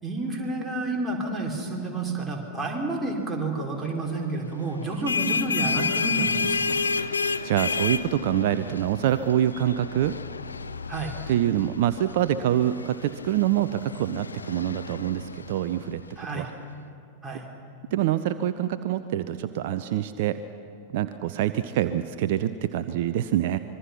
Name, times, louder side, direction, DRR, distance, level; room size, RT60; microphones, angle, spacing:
voice 1, 0.0-6.8 10.9-11.1 16.2-16.5 17.2-17.5, right 2 dB, 10° right, -2 dB, 4.2 m, -30 dB
sound 1, 4.8-16.1, left 4 dB, 75° left, 0.7 m, -31 dB
voice 2, 7.4-10.2 11.3-16.0 16.3-16.5 17.9-20.4 20.9-23.6, right 12 dB, 50° right, 12 dB, 0.6 m, -25 dB
25.5 x 22.0 x 5.9 m, 2.7 s
figure-of-eight pair, 90°, 0 cm